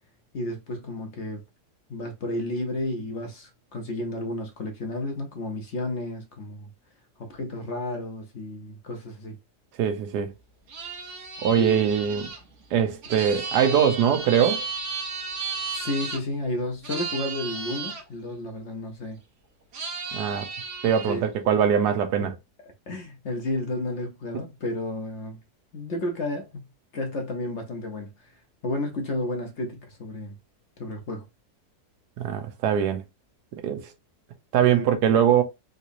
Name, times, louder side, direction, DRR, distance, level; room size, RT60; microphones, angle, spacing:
voice 1, 0.3-1.4 1.9-6.7 7.2-9.4 11.6-11.8 13.1-13.2 15.7-19.2 20.9-21.6 22.2-22.3 22.9-25.4 25.7-26.7 26.9-28.3 28.6-30.4 30.8-31.3 34.6-34.9, left 1 dB, 55° left, 0.9 m, -32 dB
voice 2, 9.8-10.3 11.4-12.3 12.7-14.6 20.1-20.5 20.8-22.3 32.2-33.0 33.6-33.8 34.5-35.4, right 8 dB, 80° right, 1.3 m, -22 dB
sound 1, 10.7-16.2 16.8-18.0 19.7-21.2, right 4 dB, 55° right, 1.1 m, -34 dB
3.7 x 2.9 x 2.5 m
omnidirectional pair, 1.7 m